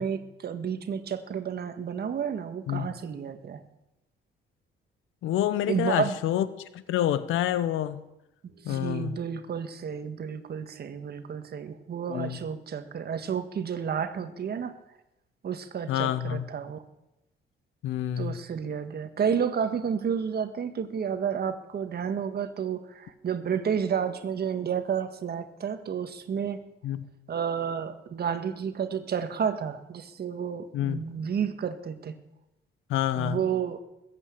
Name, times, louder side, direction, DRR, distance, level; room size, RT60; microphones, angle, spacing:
voice 1, 0.0-3.6 5.7-6.2 8.6-14.7 15.4-16.8 18.2-26.6 27.3-32.2 33.1-33.8, right 7 dB, 55° right, 10 dB, 1.6 m, -31 dB
voice 2, 5.2-6.5 6.9-8.0 8.6-9.2 12.1-12.4 15.9-16.5 17.8-18.4 26.8-27.0 30.7-31.0 32.9-33.4, left 11 dB, 85° left, 14 dB, 1.1 m, -27 dB
20.5 x 8.4 x 8.5 m, 0.91 s
cardioid pair, 90°, 20 cm